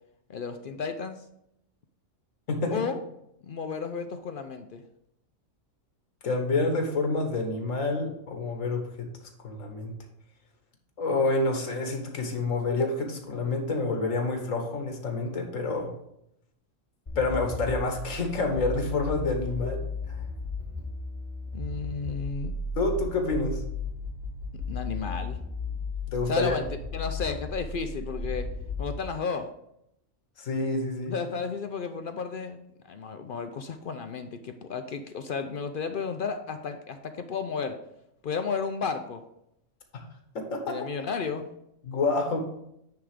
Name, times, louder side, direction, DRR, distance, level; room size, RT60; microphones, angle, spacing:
voice 1, 0.3-1.2 2.7-3.0 3.4-4.8 21.5-22.5 24.7-25.4 26.3-26.7 26.9-28.5 28.8-29.5 31.1-32.6 32.9-37.8 38.2-39.2 40.7-41.5, left 5 dB, 55° left, 7 dB, 0.6 m, -33 dB
voice 2, 6.2-9.1 9.4-9.9 11.0-15.9 17.2-19.8 22.8-23.6 26.1-26.6 30.4-31.1 40.5-40.7 41.8-42.5, left 3 dB, 90° left, 4 dB, 1.6 m, -28 dB
sound 1, 17.1-29.0, left 3 dB, 35° left, 3.6 m, -35 dB
9.3 x 3.5 x 4.9 m, 0.79 s
omnidirectional pair, 1.3 m